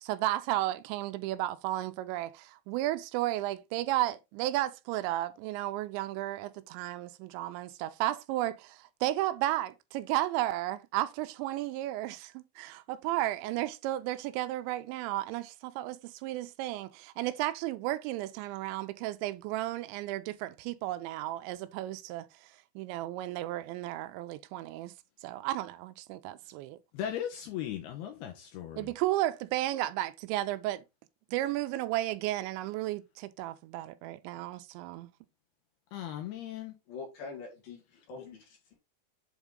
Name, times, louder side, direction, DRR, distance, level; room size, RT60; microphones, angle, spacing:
voice 1, 0.0-24.9 25.2-26.8 28.8-30.8 31.3-35.1, right 15 dB, 85° right, 2.8 m, -33 dB
voice 2, 26.9-28.9 35.9-36.7, left 10 dB, 75° left, 2.5 m, -37 dB
voice 3, 36.9-38.8, left 4 dB, 55° left, 3.5 m, -45 dB
8.2 x 3.6 x 3.6 m
omnidirectional pair, 5.2 m